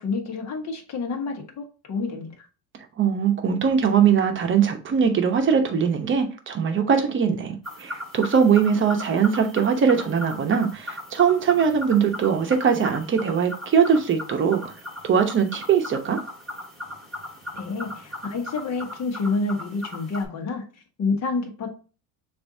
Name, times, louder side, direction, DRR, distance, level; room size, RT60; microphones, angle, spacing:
voice 1, 0.0-2.5 17.5-21.7, left 3 dB, 45° left, 1.3 m, -29 dB
voice 2, 3.0-14.6 15.0-16.2, right 7 dB, 30° right, 0.8 m, -21 dB
sound 1, 7.6-20.3, left 1 dB, ahead, 1.6 m, -38 dB
6.8 x 2.7 x 2.6 m
cardioid pair, 130°, 38 cm